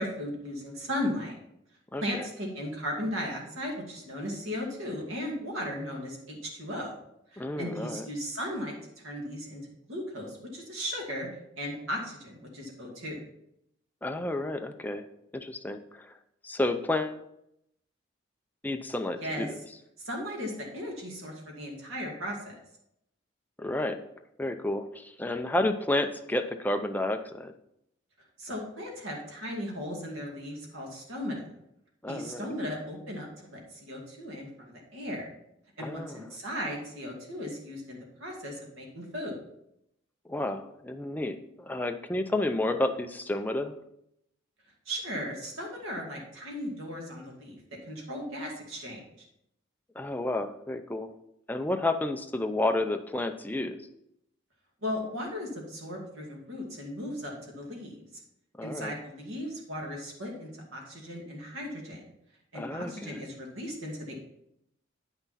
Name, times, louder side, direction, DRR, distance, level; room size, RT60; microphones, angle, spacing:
voice 1, 0.0-1.3 2.0-7.0 7.3-8.7 9.0-9.6 9.9-11.3 11.6-13.2 19.2-19.5 20.0-22.5 28.4-31.5 32.1-35.3 35.8-39.4 44.9-47.6 47.9-49.3 54.8-58.0 58.6-62.0 62.5-64.1, equal, 90° right, 0 dB, 2.4 m, -36 dB
voice 2, 1.9-2.2 7.4-8.0 14.0-15.1 15.3-16.1 16.4-17.2 18.6-19.6 23.6-24.0 24.4-27.5 32.0-32.5 35.8-36.2 40.3-43.8 50.0-51.1 51.5-53.8 58.6-58.9 62.5-63.2, left 1 dB, 10° left, 6 dB, 0.5 m, -31 dB
9.0 x 6.0 x 4.1 m, 0.78 s
head